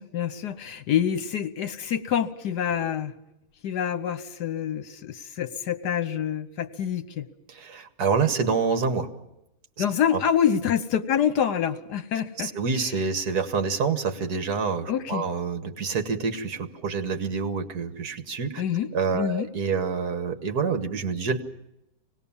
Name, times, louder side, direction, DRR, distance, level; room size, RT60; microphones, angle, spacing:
voice 1, 0.0-3.1 3.6-7.3 9.8-12.5 14.9-15.3 18.6-18.9 19.1-19.5, left 9 dB, 75° left, 11 dB, 1.6 m, -26 dB
voice 2, 7.5-9.1 9.8-9.9 10.1-10.2 12.4-18.6 18.9-21.5, right 5 dB, 65° right, 8 dB, 1.9 m, -27 dB
25.5 x 19.0 x 7.2 m, 0.90 s
omnidirectional pair, 1.8 m